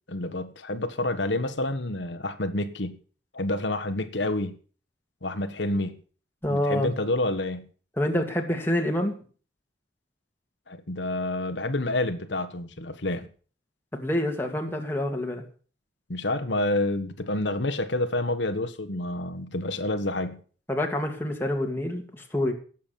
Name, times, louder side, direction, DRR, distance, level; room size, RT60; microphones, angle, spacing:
voice 1, 0.1-3.0 3.3-4.6 5.2-6.0 6.5-7.7 10.7-13.3 16.1-20.4, left 2 dB, 80° left, 9 dB, 1.4 m, -28 dB
voice 2, 6.4-6.9 8.0-9.1 13.9-15.4 20.7-22.5, left 1 dB, 10° left, 2 dB, 2.4 m, -27 dB
18.0 x 7.6 x 7.1 m, 0.41 s
head